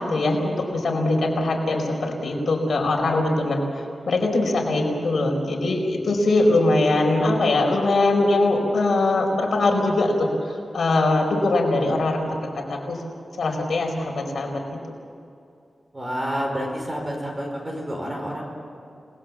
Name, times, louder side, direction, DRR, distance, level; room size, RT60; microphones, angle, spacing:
voice 1, 0.0-3.6 4.1-10.3 10.7-12.3 12.7-13.0 13.4-14.8, left 2 dB, 60° left, 1 dB, 4.6 m, -21 dB
voice 2, 15.9-18.4, equal, 20° right, 1 dB, 5.3 m, -29 dB
30.0 x 20.0 x 7.4 m, 2.5 s
wide cardioid pair, 155°, 0 cm